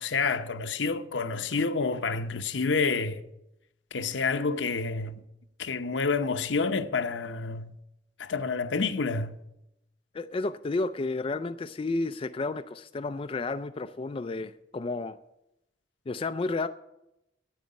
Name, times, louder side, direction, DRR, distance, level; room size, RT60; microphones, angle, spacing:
voice 1, 0.0-3.2 3.9-5.2 5.6-7.7 8.2-9.4, left 4 dB, 75° left, 0.8 m, -28 dB
voice 2, 10.1-15.2 16.1-16.7, left 3 dB, 30° left, 0.3 m, -31 dB
9.3 x 8.9 x 8.4 m
head